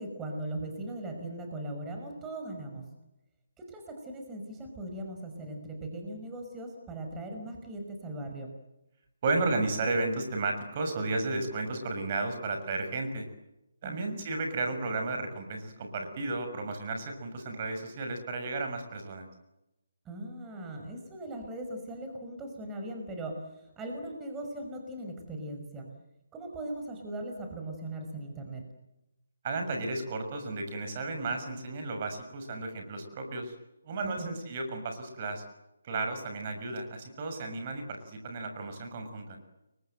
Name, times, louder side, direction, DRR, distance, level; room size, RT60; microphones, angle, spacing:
voice 1, 0.0-2.9 3.6-8.5 13.8-14.2 20.1-25.9 26.3-28.6 34.0-34.3, right 1 dB, 10° right, 3 dB, 5.5 m, -39 dB
voice 2, 9.2-13.3 13.8-19.3 29.4-33.5 33.8-35.4 35.8-39.4, right 3 dB, 35° right, 5 dB, 6.4 m, -33 dB
30.0 x 24.0 x 7.9 m, 0.93 s
figure-of-eight pair, 150°, 0 cm